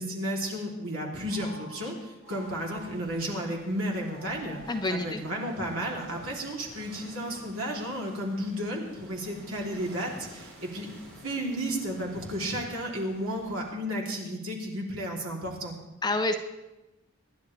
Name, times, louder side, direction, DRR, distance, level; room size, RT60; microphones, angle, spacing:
voice 1, 0.0-4.6 4.9-10.9 11.2-15.7, equal, 70° right, -1 dB, 3.1 m, -33 dB
Telephone, 1.2-3.2 4.1-7.1, left 1 dB, 30° right, 6.9 m, -49 dB
sound 1, 2.2-13.8, right 1 dB, 85° right, 4.3 m, -52 dB
voice 2, 4.7-5.2 16.0-16.4, left 2 dB, 20° left, 6 dB, 0.7 m, -27 dB
26.0 x 11.0 x 3.3 m, 1.0 s
head